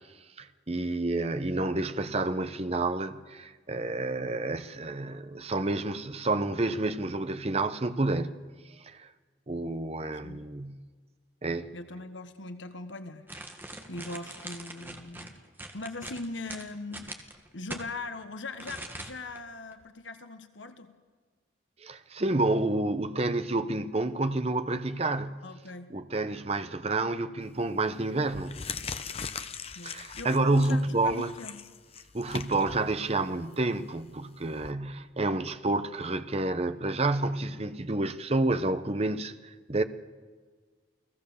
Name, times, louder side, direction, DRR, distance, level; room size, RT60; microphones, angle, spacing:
voice 1, 0.4-8.4 8.8-9.1 9.5-10.8 11.4-11.7 21.8-25.4 25.9-28.6 29.8-31.3 32.1-39.8, right 2 dB, 30° right, 0.9 m, -29 dB
voice 2, 11.7-13.3 13.9-15.3 15.7-17.1 17.5-20.9 25.4-25.9 29.7-31.6, left 2 dB, 75° left, 1.3 m, -40 dB
sound 1, 13.3-17.9 18.6-19.4 19.7-19.8, right 1 dB, 10° right, 1.7 m, -42 dB
sound 2, 27.5-27.7 28.2-34.7, left 5 dB, 30° left, 0.9 m, -41 dB
29.5 x 19.0 x 7.1 m
head